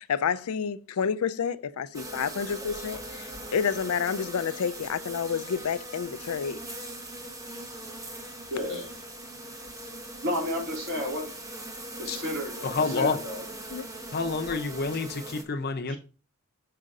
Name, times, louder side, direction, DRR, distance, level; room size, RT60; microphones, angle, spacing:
voice 1, 0.0-6.6 13.7-13.9, left 7 dB, 80° left, 0.4 m, -29 dB
sound 1, 1.9-15.4, right 1 dB, 15° right, 0.9 m, -40 dB
voice 2, 8.5-8.9 10.2-11.2 12.0-12.7 12.9-13.4 15.9-16.0, left 1 dB, 55° right, 3.2 m, -31 dB
voice 3, 12.6-13.2 14.1-15.9, left 4 dB, 45° left, 0.7 m, -28 dB
6.5 x 5.0 x 3.7 m
head